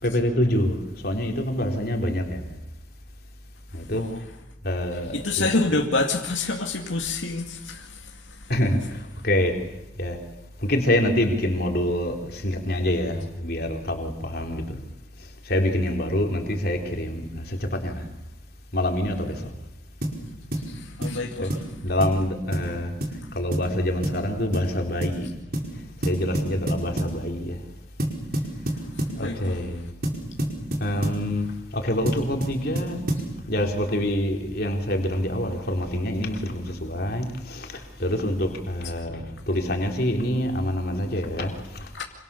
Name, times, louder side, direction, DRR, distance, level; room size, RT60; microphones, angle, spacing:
voice 1, 0.0-2.5 3.7-4.0 4.6-5.5 8.5-9.5 10.0-10.2 10.6-14.8 15.2-18.1 18.7-19.5 21.4-21.5 21.8-22.9 23.3-25.3 26.0-27.6 29.2-29.9 30.8-33.0 33.5-41.9, left 1 dB, 50° left, 3.7 m, -26 dB
voice 2, 3.7-4.2 5.1-8.5 9.2-9.3 20.6-21.7 28.8-29.9 41.9-42.0, left 3 dB, 80° left, 2.5 m, -28 dB
sound 1, 20.0-20.2 20.5-20.7 21.0-21.2 21.5-21.7 22.0-22.2 22.5-22.7 23.0-23.2 23.5-23.7 24.0-24.2 24.5-24.7 25.0-25.2 25.5-25.7 26.0-27.2 28.0-29.2 30.0-31.2 32.1-33.3, right 1 dB, 50° right, 4.9 m, -28 dB
27.0 x 26.5 x 7.0 m
head